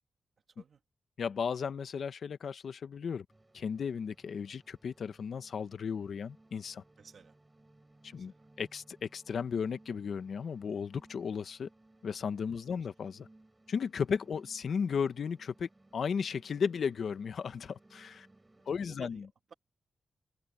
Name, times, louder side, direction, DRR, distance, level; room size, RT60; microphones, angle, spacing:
voice 1, 1.2-3.2 3.5-6.8 8.1-8.3 8.6-11.7 12.0-13.3 13.7-18.3 18.7-19.2, left 6 dB, 65° left, 1.1 m, -35 dB
sound 1, 3.3-18.8, right 2 dB, 15° right, 8.0 m, -62 dB
voice 2, 7.0-7.4 8.1-8.5 12.7-12.9 18.7-19.5, right 6 dB, 55° right, 2.2 m, -56 dB
wide cardioid pair, 120°, 0 cm